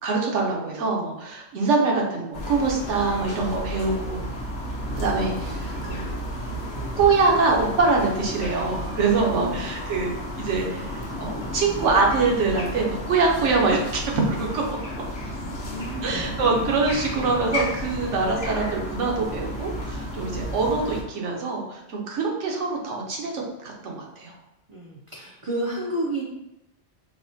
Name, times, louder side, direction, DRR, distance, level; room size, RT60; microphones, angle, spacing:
voice 1, 0.0-4.2 4.9-6.2 7.0-14.6 16.0-24.3, right 4 dB, 85° right, 0 dB, 1.1 m, -24 dB
sound 1, 2.3-21.0, left 1 dB, 80° left, 1.1 m, -33 dB
sound 2, 4.9-14.7, left 1 dB, 35° left, 0.4 m, -41 dB
voice 2, 9.2-9.6 15.6-16.3 24.7-26.2, right 1 dB, 60° right, -3 dB, 0.3 m, -31 dB
4.6 x 2.1 x 2.6 m, 0.93 s
omnidirectional pair, 1.2 m